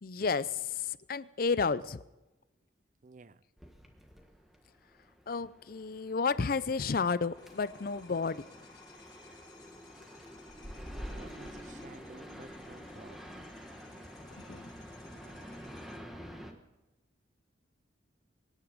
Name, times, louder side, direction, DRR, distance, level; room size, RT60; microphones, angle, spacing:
voice 1, 0.0-2.0 5.3-8.4 14.3-14.7, left 5 dB, 50° left, 0.5 m, -32 dB
voice 2, 3.0-3.4 10.8-13.5 15.0-16.1, right 3 dB, 45° right, 0.5 m, -55 dB
sound 1, 3.6-16.5, equal, ahead, 1.4 m, -48 dB
sound 2, 7.3-16.0, left 3 dB, 20° left, 1.9 m, -58 dB
24.0 x 10.0 x 5.1 m
head